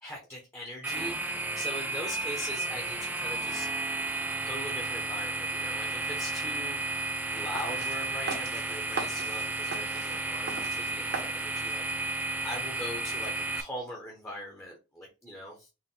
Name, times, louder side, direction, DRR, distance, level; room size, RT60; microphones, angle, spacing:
voice 1, 0.0-3.7 4.5-6.8 7.3-12.2 12.4-15.7, left 1 dB, 10° left, -2 dB, 1.0 m, -41 dB
sound 1, 0.8-13.6, right 2 dB, 10° right, 0.3 m, -33 dB
sound 2, 7.6-12.6, right 4 dB, 55° right, 1.1 m, -40 dB
4.3 x 2.5 x 3.8 m, 0.28 s
head